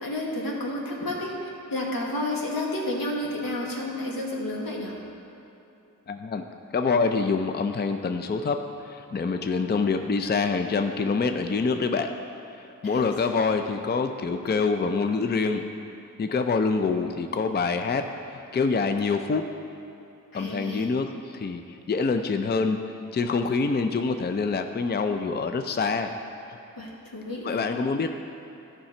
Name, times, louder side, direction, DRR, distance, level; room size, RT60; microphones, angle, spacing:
voice 1, 0.0-5.0 12.8-13.5 20.3-20.9 26.8-27.6, left 1 dB, 85° left, -3 dB, 1.6 m, -31 dB
voice 2, 6.1-6.5 6.7-12.2 12.6-15.7 16.2-19.5 20.3-22.8 23.1-26.1 27.4-28.2, left 4 dB, 30° left, 7 dB, 0.4 m, -26 dB
12.5 x 5.7 x 4.3 m, 2.9 s
wide cardioid pair, 75°, 34 cm